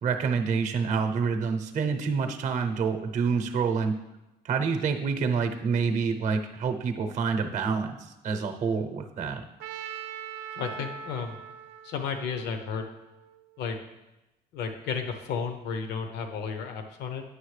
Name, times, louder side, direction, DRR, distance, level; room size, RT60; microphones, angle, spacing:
voice 1, 0.0-3.9 4.4-8.0 8.2-9.4, right 5 dB, 50° right, 7 dB, 0.7 m, -27 dB
Trumpet, 9.6-13.6, right 7 dB, 85° right, 0.5 m, -41 dB
voice 2, 10.5-11.4 11.8-12.8 13.6-13.8 14.5-17.2, left 6 dB, 80° left, 6 dB, 0.8 m, -33 dB
9.5 x 6.4 x 3.2 m, 0.99 s
cardioid pair, 110°, 17 cm